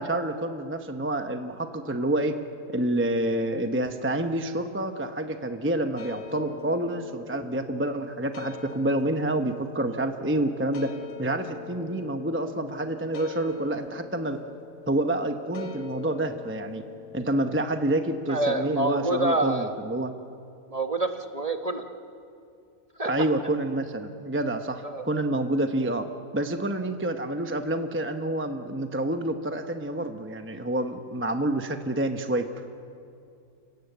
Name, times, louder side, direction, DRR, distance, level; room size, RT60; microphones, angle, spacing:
voice 1, 0.0-2.4 2.7-10.9 11.2-14.4 14.9-16.8 17.1-20.1 23.1-26.1 26.3-32.4, right 1 dB, 10° right, 6 dB, 0.8 m, -28 dB
sound 1, 6.0-17.7, left 8 dB, 65° left, 1.4 m, -43 dB
voice 2, 18.3-19.7 20.7-21.8 23.0-23.1 24.8-25.0, right 2 dB, 30° right, 6 dB, 1.1 m, -27 dB
29.0 x 17.5 x 8.0 m, 2.5 s
omnidirectional pair, 1.5 m